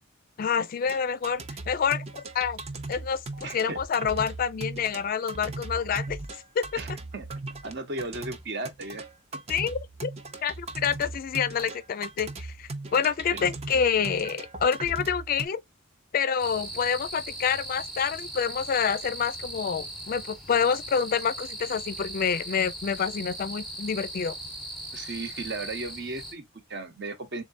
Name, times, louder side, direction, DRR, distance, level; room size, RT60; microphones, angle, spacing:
voice 1, 0.4-2.0 2.3-2.6 2.9-6.2 6.6-6.8 9.5-10.1 10.4-15.6 16.1-24.4, left 7 dB, 45° left, 0.4 m, -27 dB
sound 1, 0.9-15.5, right 2 dB, 30° right, 0.5 m, -38 dB
voice 2, 3.4-3.8 6.8-7.3 7.6-9.0 9.3-9.4 13.3-13.5 24.9-27.4, right 2 dB, 55° right, 0.9 m, -36 dB
sound 2, 16.4-26.3, right 1 dB, ahead, 1.0 m, -39 dB
3.7 x 3.2 x 2.5 m
head